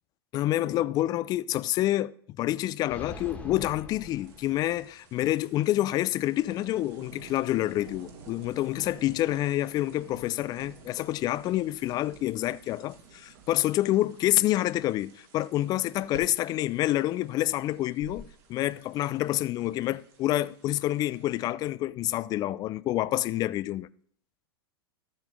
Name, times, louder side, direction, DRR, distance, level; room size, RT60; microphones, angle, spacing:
voice 1, 0.3-23.9, left 15 dB, 30° left, 0.3 m, -28 dB
sound 1, 2.9-5.1, left 2 dB, 10° left, 1.6 m, -43 dB
sound 2, 4.0-21.5, right 4 dB, 55° right, 1.9 m, -52 dB
13.0 x 7.3 x 3.5 m
hypercardioid pair, 100°, 13 cm